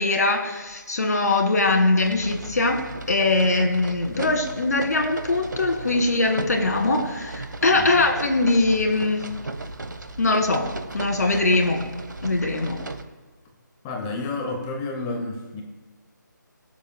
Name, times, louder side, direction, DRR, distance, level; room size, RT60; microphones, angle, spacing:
voice 1, 0.0-9.3 10.2-10.6 10.9-11.8 12.2-12.8, left 2 dB, 55° left, 4 dB, 2.0 m, -22 dB
sound 1, 2.0-13.0, right 2 dB, 70° right, 1.0 m, -36 dB
voice 2, 7.8-8.1 13.8-15.6, left 3 dB, 10° left, 3 dB, 0.6 m, -30 dB
21.5 x 7.2 x 2.2 m, 1.2 s
figure-of-eight pair, 155°, 11 cm